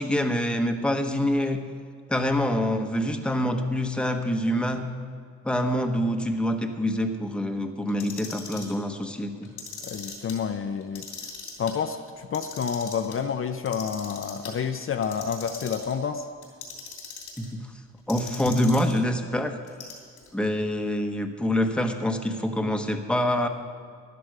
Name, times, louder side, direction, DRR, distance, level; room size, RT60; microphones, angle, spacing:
voice 1, 0.0-1.6 2.1-4.9 5.4-9.5 17.4-17.6 18.1-19.6 20.3-23.5, left 1 dB, 5° left, 5 dB, 1.0 m, -26 dB
Clock, 7.9-8.7 9.4-10.3 10.8-11.7 12.2-13.1 13.7-14.5 15.0-15.9 16.4-17.5 18.1-19.0 19.7-20.3, left 6 dB, 90° left, 2.9 m, -40 dB
voice 2, 9.8-11.1 11.6-16.3 18.5-18.6, left 7 dB, 45° left, 7 dB, 0.6 m, -29 dB
13.0 x 10.5 x 4.8 m, 2.1 s
cardioid pair, 90°, 30 cm